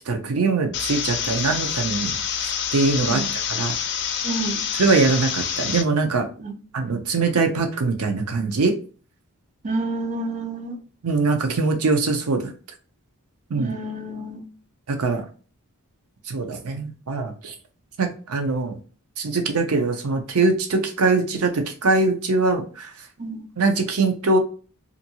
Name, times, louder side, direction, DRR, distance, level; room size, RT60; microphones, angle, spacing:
voice 1, 0.1-2.2 2.4-3.2 3.5-3.7 4.7-6.3 6.7-8.7 11.0-12.5 13.5-13.7 14.9-15.3 16.3-17.5 18.0-18.7 19.2-22.9 23.6-24.4, right 3 dB, 80° right, 0.6 m, -22 dB
sound 1, 0.7-5.8, left 8 dB, 50° left, 0.4 m, -27 dB
voice 2, 4.2-4.6 6.4-6.6 9.6-10.8 13.6-14.4 23.2-23.4, right 2 dB, 35° right, 0.4 m, -29 dB
2.7 x 2.5 x 2.8 m
head